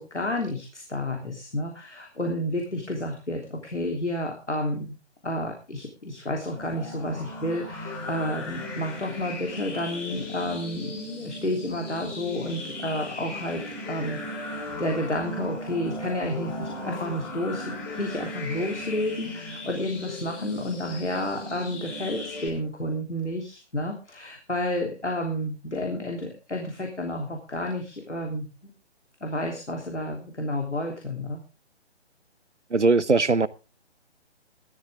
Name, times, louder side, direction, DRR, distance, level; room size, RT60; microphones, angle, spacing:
voice 1, 0.1-4.9 5.2-13.6 13.9-28.5 29.2-31.4, left 1 dB, 80° left, 1 dB, 3.3 m, -31 dB
sound 1, 6.5-22.5, left 1 dB, 10° left, 3.1 m, -37 dB
voice 2, 32.7-33.5, right 3 dB, 85° right, 17 dB, 1.0 m, -20 dB
16.0 x 12.5 x 3.5 m, 0.30 s
figure-of-eight pair, 140°, 34 cm